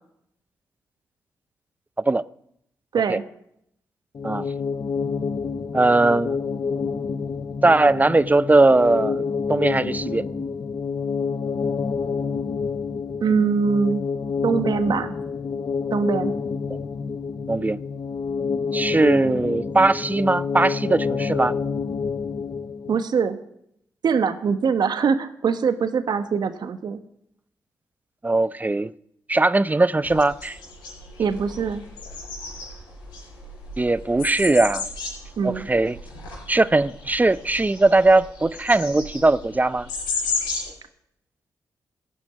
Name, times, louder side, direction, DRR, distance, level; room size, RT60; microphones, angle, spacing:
voice 1, 2.9-3.2 13.2-14.0 14.4-15.1 15.9-16.3 22.9-23.4 24.0-27.0 31.2-31.8 35.4-35.7, right 6 dB, 65° right, 1.3 m, -22 dB
sound 1, 4.1-23.0, left 5 dB, 50° left, 0.9 m, -28 dB
voice 2, 5.7-6.4 7.6-9.2 9.5-10.2 16.7-16.8 17.5-17.8 18.7-21.5 28.2-28.9 29.3-30.6 33.8-34.9 35.4-36.0 36.5-39.9, right 2 dB, 20° right, 0.6 m, -19 dB
sound 2, 30.0-40.7, left 4 dB, 90° left, 4.9 m, -33 dB
15.0 x 7.1 x 9.5 m
supercardioid pair, 45°, 8 cm